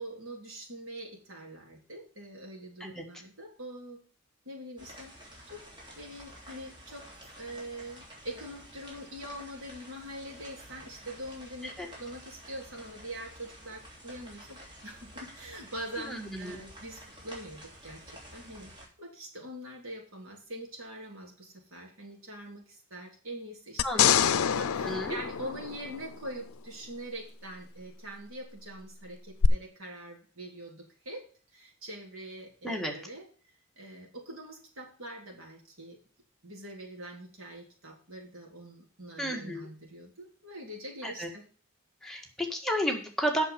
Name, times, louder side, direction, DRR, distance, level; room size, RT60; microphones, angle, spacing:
voice 1, 0.0-4.0 4.5-5.6 6.0-7.1 7.4-31.3 31.5-33.2 33.8-36.0 36.4-41.4, right 1 dB, 75° right, -1 dB, 3.7 m, -44 dB
sound 1, 4.8-18.9, equal, 25° right, 3.5 m, -50 dB
voice 2, 16.0-16.6 23.8-25.2 32.6-32.9 39.2-39.7 41.0-41.3 42.0-43.4, equal, ahead, 0 dB, 1.8 m, -33 dB
sound 2, 23.8-26.3 29.4-29.5, left 8 dB, 85° left, 0.5 m, -26 dB
8.2 x 6.5 x 7.0 m, 0.40 s
head